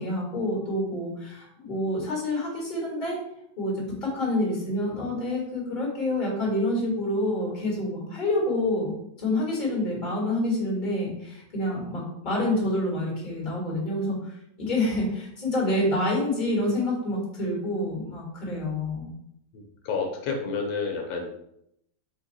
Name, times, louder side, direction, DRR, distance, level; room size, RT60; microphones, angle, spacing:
voice 1, 0.0-3.2 3.6-8.9 9.2-14.2 14.6-19.1, left 1 dB, 25° left, -3 dB, 1.7 m, -27 dB
voice 2, 19.5-21.3, left 4 dB, 85° left, 2 dB, 1.4 m, -30 dB
4.4 x 2.7 x 3.9 m, 0.77 s
omnidirectional pair, 2.0 m